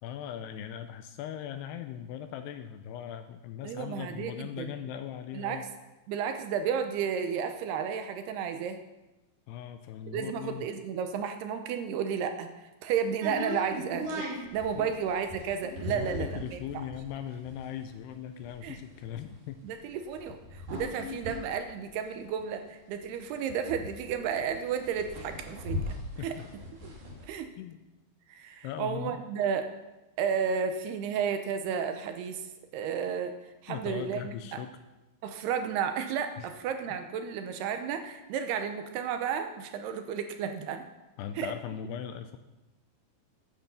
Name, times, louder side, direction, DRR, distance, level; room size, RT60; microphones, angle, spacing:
voice 1, 0.0-5.7 9.5-10.7 14.8-14.9 15.9-19.6 26.2-26.5 27.6-27.8 28.6-29.2 33.7-34.8 36.4-36.5 41.2-42.4, left 9 dB, 85° left, 9 dB, 2.5 m, -39 dB
voice 2, 3.6-4.7 5.3-5.6 6.1-8.8 10.1-16.6 18.6-18.8 19.6-25.8 26.2-26.4 26.8-26.9 27.3-27.5 28.3-29.7 30.2-32.4 32.7-33.3 33.6-34.6 35.2-40.9 41.4-41.5, right 7 dB, 80° right, 7 dB, 2.6 m, -32 dB
sound 1, 13.2-22.7 23.0-23.1 23.3-27.2, left 1 dB, 50° right, 4.0 m, -39 dB
10.5 x 9.0 x 7.0 m, 1.0 s
omnidirectional pair, 5.1 m